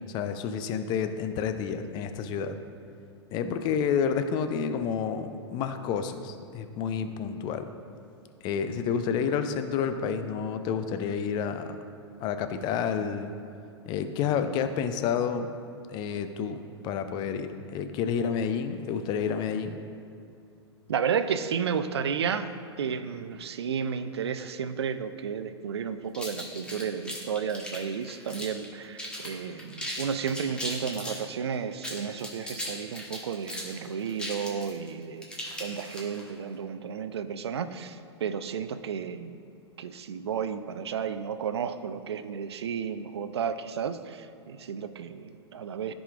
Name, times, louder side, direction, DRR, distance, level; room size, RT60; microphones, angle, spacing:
voice 1, 0.1-2.6 3.3-7.7 8.4-11.8 12.2-13.3 13.9-15.5 15.9-19.8, left 7 dB, 30° left, 9 dB, 0.5 m, -29 dB
voice 2, 20.9-22.5 22.8-35.3 35.6-39.4 39.8-45.9, right 7 dB, 65° right, 11 dB, 0.4 m, -32 dB
sound 1, 26.1-28.7 29.0-29.3 29.6-31.2 31.7-36.3, equal, 5° left, 1.2 m, -37 dB
14.0 x 4.9 x 2.5 m, 2.5 s
figure-of-eight pair, 100°, 14 cm